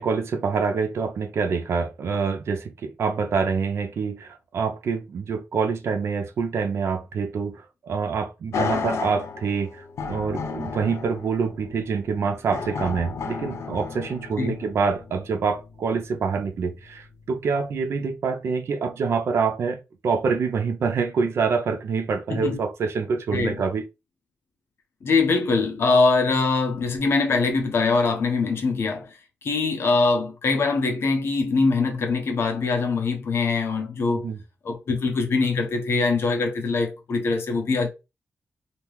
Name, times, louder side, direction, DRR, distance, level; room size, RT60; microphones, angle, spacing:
voice 1, 0.0-23.9 34.1-34.4, right 5 dB, 70° right, 0.5 m, -26 dB
sound 1, 8.5-16.6 17.1-17.2, left 5 dB, 85° left, 0.5 m, -33 dB
voice 2, 25.0-29.1 29.4-34.3 34.6-37.9, left 4 dB, 60° left, 0.8 m, -23 dB
2.9 x 2.4 x 3.3 m
wide cardioid pair, 155°, 5 cm